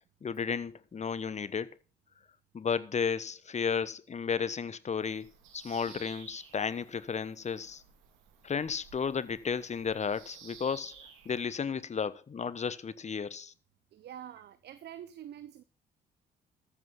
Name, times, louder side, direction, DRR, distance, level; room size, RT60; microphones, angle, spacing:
voice 1, 0.2-1.7 2.5-5.3 5.5-7.8 8.4-10.9 11.2-13.5, left 6 dB, 35° left, 1.1 m, -33 dB
Bird vocalization bird call bird song, 5.0-11.4, right 7 dB, 70° right, 2.8 m, -54 dB
voice 2, 13.9-15.6, right 10 dB, 55° right, 0.9 m, -46 dB
14.0 x 8.2 x 5.8 m
hypercardioid pair, 50°, 21 cm